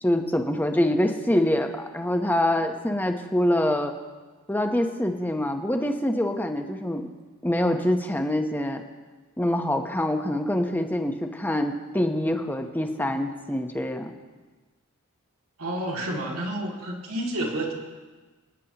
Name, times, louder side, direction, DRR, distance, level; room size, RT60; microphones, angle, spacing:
voice 1, 0.0-3.9 4.5-7.1 7.4-8.8 9.4-14.1, left 1 dB, 10° left, 5 dB, 0.8 m, -25 dB
voice 2, 15.6-17.7, right 1 dB, 70° right, -1 dB, 2.3 m, -30 dB
26.0 x 9.8 x 2.9 m, 1.3 s
head